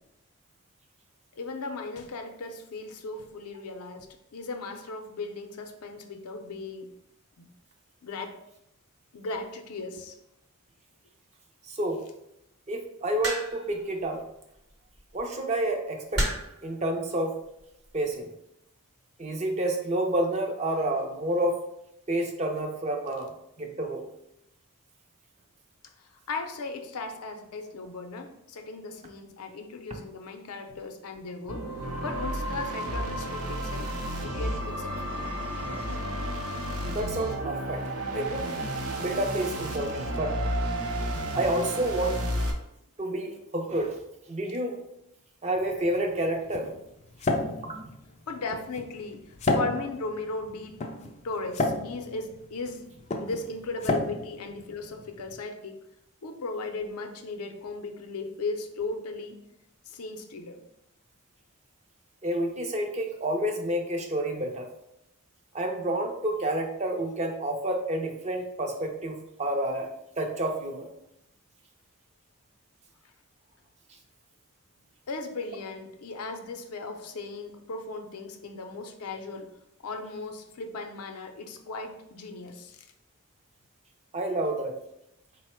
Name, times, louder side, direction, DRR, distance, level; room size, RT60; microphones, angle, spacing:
voice 1, 1.4-6.9 7.4-7.5 8.0-8.4 9.1-10.2 26.3-31.7 32.0-33.9 34.2-35.3 48.3-49.2 49.5-50.8 51.2-52.8 53.2-55.8 56.2-59.4 59.9-60.6 75.1-79.5 79.8-82.9, left 3 dB, 80° left, 5 dB, 0.5 m, -37 dB
voice 2, 11.7-12.0 12.7-14.2 15.1-16.2 16.6-17.4 17.9-18.3 19.2-21.6 22.1-24.0 36.8-37.8 38.1-38.5 39.0-40.4 41.3-42.2 43.0-44.0 44.3-44.8 45.4-46.7 47.3-47.9 62.2-64.7 65.5-69.9 70.2-70.9 84.1-84.7, right 1 dB, 30° right, 3 dB, 0.5 m, -29 dB
sound 1, 13.2-13.7 15.0-15.2 16.1-16.6 17.6-17.9, right 1 dB, 45° right, 0.9 m, -30 dB
sound 2, 31.5-42.5, right 1 dB, 80° right, 0.6 m, -32 dB
sound 3, 45.6-55.4, left 2 dB, 30° left, 0.3 m, -32 dB
4.0 x 2.1 x 4.3 m, 0.81 s
head